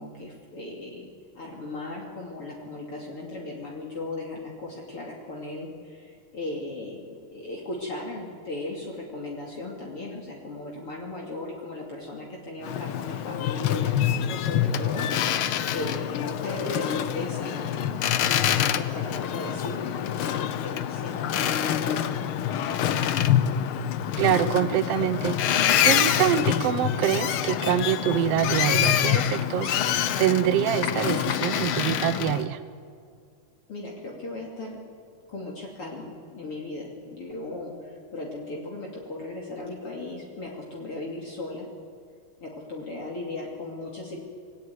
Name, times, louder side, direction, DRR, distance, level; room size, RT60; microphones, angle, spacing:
voice 1, 0.0-22.0 33.7-34.8 35.3-41.7 42.4-44.2, left 2 dB, 45° left, -2 dB, 3.4 m, -37 dB
Boat Water vehicle, 12.6-32.4, left 10 dB, 85° left, 1.1 m, -26 dB
voice 2, 24.2-32.6, right 11 dB, 70° right, 10 dB, 1.6 m, -25 dB
27.0 x 19.5 x 9.3 m, 2.3 s
omnidirectional pair, 3.6 m